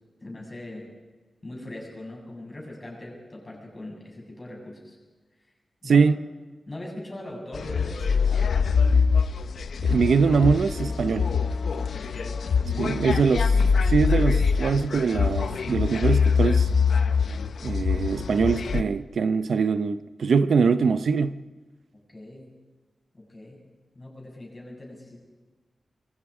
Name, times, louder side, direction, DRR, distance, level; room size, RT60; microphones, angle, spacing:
voice 1, 0.2-0.8 1.4-5.0 5.8-6.0 6.7-8.6 11.9-13.3 22.1-22.5 23.1-23.6 23.9-25.2, left 1 dB, 25° left, 7.5 m, -40 dB
sound 1, 7.5-18.8, left 5 dB, 85° left, 0.9 m, -24 dB
voice 2, 9.8-11.3 12.8-13.5 13.9-16.7 17.6-21.4, right 5 dB, 75° right, 0.8 m, -22 dB
27.0 x 23.0 x 5.0 m
wide cardioid pair, 150°, 0 cm